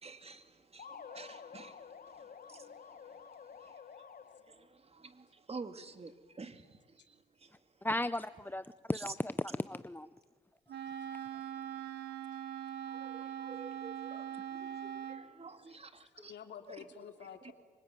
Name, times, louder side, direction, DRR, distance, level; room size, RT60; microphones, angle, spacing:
voice 1, 0.0-3.8 4.5-7.6 8.9-9.0 11.3-11.8 12.8-16.3 16.7-16.8 17.4-17.5, right 4 dB, 35° right, 2.3 m, -51 dB
sound 1, 0.8-4.7, left 7 dB, 50° left, 1.6 m, -51 dB
voice 2, 7.8-10.1 16.2-16.3, left 1 dB, 10° left, 0.7 m, -36 dB
Wind instrument woodwind instrument, 10.7-15.3, right 9 dB, 70° right, 3.5 m, -42 dB
voice 3, 15.7-17.5, left 8 dB, 70° left, 2.9 m, -50 dB
26.0 x 23.5 x 9.2 m
cardioid pair, 70°, 19 cm